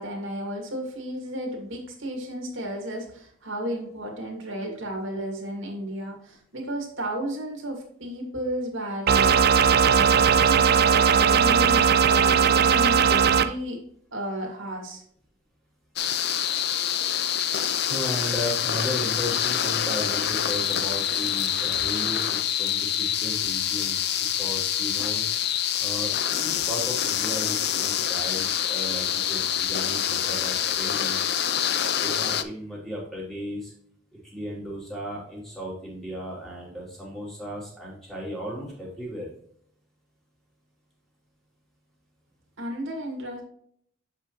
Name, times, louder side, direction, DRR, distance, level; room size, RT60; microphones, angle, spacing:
voice 1, 0.0-13.8 14.1-15.0 42.6-43.4, equal, 70° right, 0 dB, 2.2 m, -33 dB
sound 1, 9.1-13.5, right 7 dB, 50° right, 0.4 m, -18 dB
sound 2, 16.0-32.4, left 10 dB, 55° left, 0.5 m, -26 dB
voice 2, 17.8-23.9 24.3-25.2 25.8-31.3 32.0-33.7 34.2-39.3, equal, ahead, -6 dB, 3.2 m, -35 dB
7.6 x 5.8 x 3.1 m, 0.65 s
head